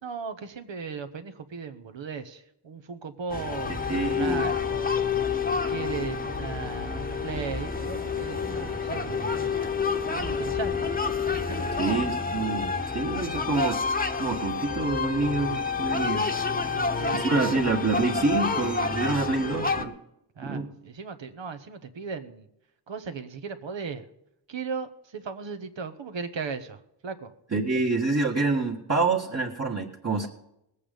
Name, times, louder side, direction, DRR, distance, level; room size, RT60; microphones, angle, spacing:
voice 1, 0.0-5.0 5.7-9.7 10.1-10.9 11.4-11.9 16.5-17.6 20.3-22.5 22.9-24.1 24.5-27.3 27.7-27.8 30.2-30.3, right 5 dB, 75° right, 8 dB, 1.3 m, -37 dB
sound 1, 3.3-19.8, left 5 dB, 20° left, 1.0 m, -29 dB
voice 2, 3.9-4.5 11.8-12.7 12.9-13.8 14.2-16.3 17.1-20.0 20.4-20.7 27.5-30.3, right 3 dB, 35° right, -3 dB, 1.6 m, -27 dB
20.0 x 8.5 x 5.2 m, 0.82 s
wide cardioid pair, 130°, 45 cm